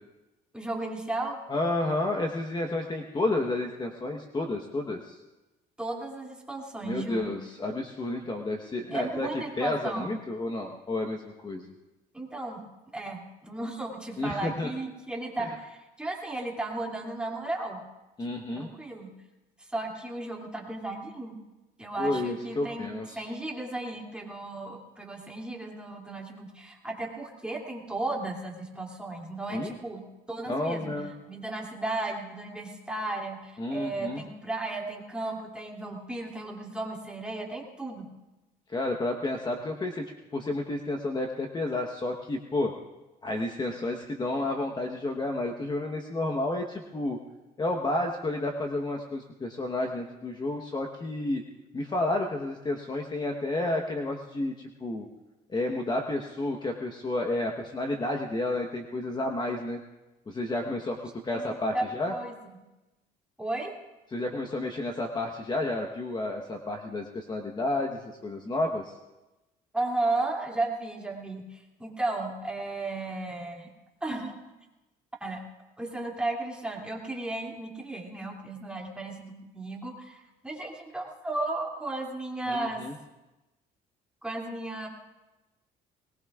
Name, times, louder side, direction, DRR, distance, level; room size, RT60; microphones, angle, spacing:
voice 1, 0.5-1.4 5.8-7.4 8.9-10.1 12.1-12.6 12.9-17.8 18.6-19.1 19.7-21.4 21.8-30.9 31.2-38.1 61.3-62.3 63.4-63.7 69.7-73.7 74.0-74.4 75.2-75.5 75.8-82.9 84.2-84.9, right 2 dB, 5° right, -2 dB, 2.7 m, -34 dB
voice 2, 1.5-5.2 6.8-9.3 9.6-11.7 14.2-14.7 15.4-15.5 18.2-18.7 22.0-23.2 29.5-29.7 30.5-31.1 33.6-34.2 38.7-42.7 43.2-47.2 47.6-51.4 51.7-55.1 55.5-59.8 60.3-62.1 64.1-68.9 82.5-82.9, left 2 dB, 25° left, 3 dB, 1.1 m, -31 dB
21.0 x 19.5 x 2.4 m, 1.1 s
cardioid pair, 110°, 17 cm